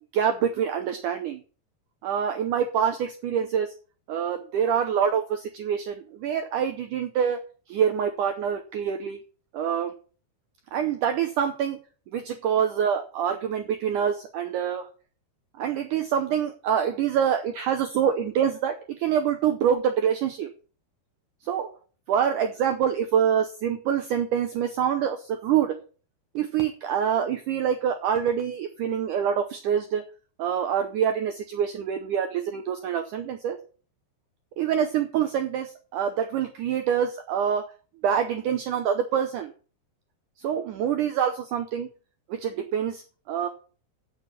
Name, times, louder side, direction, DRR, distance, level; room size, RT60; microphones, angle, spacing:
voice 1, 0.1-1.4 2.0-3.7 4.1-7.4 7.7-9.2 9.5-9.9 10.7-11.8 12.1-14.9 15.6-20.5 21.4-21.7 22.1-25.8 26.4-30.0 30.4-33.6 34.6-37.7 38.0-39.5 40.4-41.9 42.3-43.5, right 8 dB, 75° right, 6 dB, 2.0 m, -26 dB
8.3 x 6.7 x 8.1 m, 0.39 s
omnidirectional pair, 4.5 m